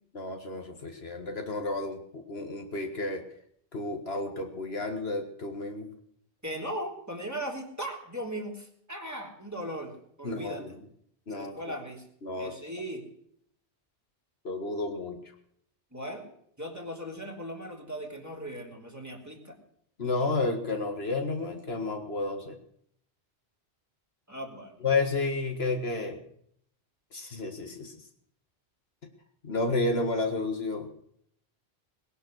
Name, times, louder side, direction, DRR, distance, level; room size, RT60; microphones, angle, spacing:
voice 1, 0.1-3.2 3.7-5.9 10.2-10.8 11.3-11.5 12.2-12.6 14.4-15.2 20.0-22.6 24.8-26.2 27.1-28.0 29.4-30.9, left 3 dB, 65° left, 5 dB, 2.1 m, -31 dB
voice 2, 6.4-10.6 11.3-12.0 12.4-13.0 15.9-16.3 16.6-19.6 24.3-24.8, equal, 15° right, 1 dB, 3.2 m, -38 dB
19.5 x 11.0 x 6.4 m, 0.67 s
omnidirectional pair, 1.1 m